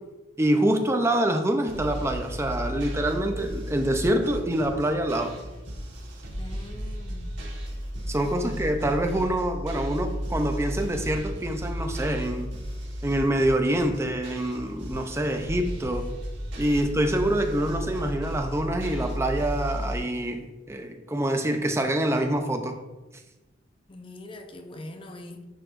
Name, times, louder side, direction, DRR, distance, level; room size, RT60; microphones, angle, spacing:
voice 1, 0.4-5.4 8.1-12.5 13.0-16.1 16.6-22.8, right 1 dB, 15° right, 5 dB, 0.6 m, -26 dB
sound 1, 1.7-20.0, equal, 70° right, 1.5 m, -34 dB
voice 2, 6.4-7.4 8.2-9.0 16.6-16.8 23.9-25.5, left 1 dB, 30° left, 6 dB, 0.5 m, -42 dB
10.0 x 4.7 x 2.5 m, 1.1 s
head